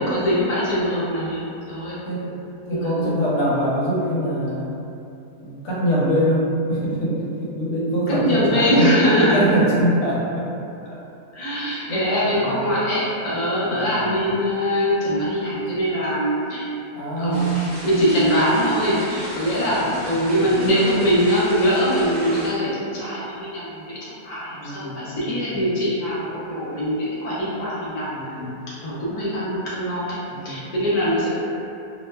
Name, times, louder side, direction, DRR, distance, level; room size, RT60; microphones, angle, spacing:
voice 1, 0.0-2.0 2.7-3.1 8.1-9.6 11.3-16.7 17.2-17.5 17.8-28.4 28.8-30.2 30.4-31.4, equal, 65° left, -9 dB, 0.3 m, -22 dB
voice 2, 2.0-2.4 2.7-4.8 5.4-8.9 9.3-10.5 10.8-11.0 11.9-12.8 13.7-14.1 16.9-18.2 19.6-20.1 20.4-20.7 24.5-25.7 28.1-28.6 30.3-30.6, right 1 dB, 85° left, -7 dB, 1.2 m, -24 dB
sound 1, 17.3-22.5, equal, 45° right, 0.7 m, -36 dB
2.8 x 2.1 x 2.2 m, 2.7 s
omnidirectional pair, 1.6 m